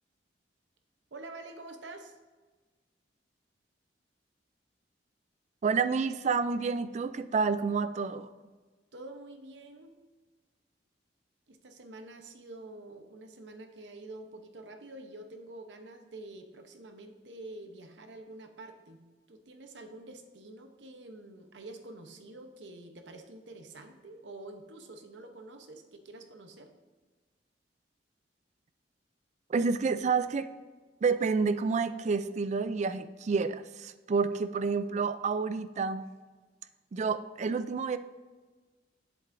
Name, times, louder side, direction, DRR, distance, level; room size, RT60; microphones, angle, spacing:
voice 1, 1.1-2.1 8.9-9.9 11.5-19.0 19.3-26.7, right 2 dB, 90° right, 0.8 m, -47 dB
voice 2, 5.6-8.3 29.5-30.5 31.0-36.0 36.9-38.0, right 5 dB, 40° right, 0.3 m, -29 dB
7.7 x 7.4 x 2.6 m
head